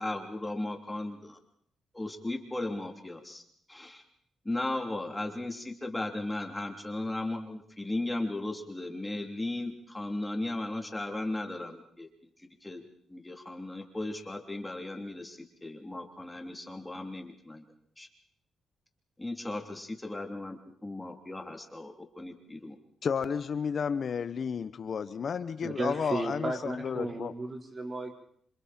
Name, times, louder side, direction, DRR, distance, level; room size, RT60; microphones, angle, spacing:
voice 1, 0.0-1.4 1.9-3.4 3.7-4.0 4.4-12.1 12.4-12.8 13.1-17.7 18.0-18.1 19.2-22.7, left 2 dB, 10° left, 3 dB, 3.3 m, -36 dB
voice 2, 23.0-27.3, left 6 dB, 55° left, 13 dB, 0.9 m, -32 dB
voice 3, 25.6-28.1, right 2 dB, 35° right, 2 dB, 4.4 m, -34 dB
27.5 x 26.5 x 4.4 m, 0.64 s
cardioid pair, 100°, 0 cm